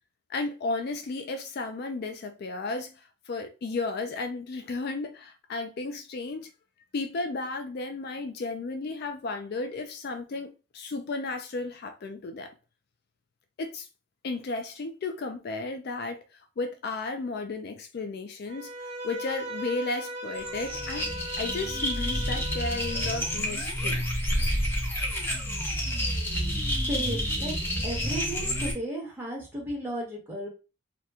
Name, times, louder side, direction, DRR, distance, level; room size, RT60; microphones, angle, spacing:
voice 1, 0.3-6.5 6.9-12.5 13.6-13.9 14.2-21.1 21.4-24.0, left 3 dB, 50° left, 0.3 m, -34 dB
Bowed string instrument, 18.5-23.5, right 1 dB, 35° right, 0.6 m, -39 dB
sound 1, 20.3-28.7, equal, 10° left, 0.7 m, -29 dB
voice 2, 26.9-27.5 27.8-30.5, right 1 dB, 10° right, 1.1 m, -34 dB
2.9 x 2.2 x 3.5 m
head